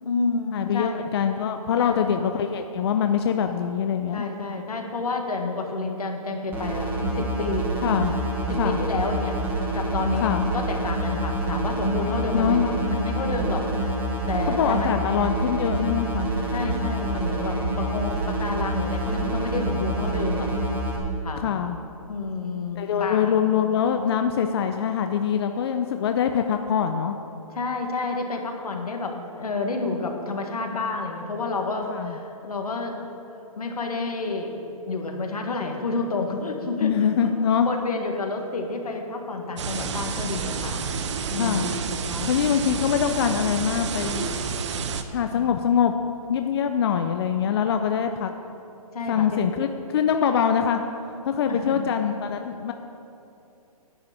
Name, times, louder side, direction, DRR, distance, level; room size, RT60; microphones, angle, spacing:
voice 1, 0.0-1.0 1.8-2.1 4.1-6.9 7.2-7.7 8.5-9.3 9.7-13.7 14.3-15.0 16.5-20.5 21.2-21.5 22.1-23.4 27.5-33.0 33.6-36.9 37.6-40.8 41.3-41.6 42.1-42.3 45.3-45.5 48.9-49.5 51.5-51.9, left 3 dB, 80° left, 3 dB, 1.9 m, -29 dB
voice 2, 0.5-4.3 7.8-8.2 8.6-8.8 10.2-10.5 12.3-12.7 14.5-16.3 21.4-21.8 22.8-27.2 31.9-32.2 36.8-37.7 41.4-41.7 42.3-44.5 45.1-45.9 46.3-48.3 49.1-50.8 51.2-52.7, left 8 dB, 45° left, 6 dB, 0.5 m, -24 dB
sound 1, 6.5-21.0, right 1 dB, 10° right, 1.3 m, -27 dB
sound 2, 39.6-45.0, right 5 dB, 50° right, 0.8 m, -29 dB
10.5 x 6.2 x 8.4 m, 2.7 s
hypercardioid pair, 150°, 19 cm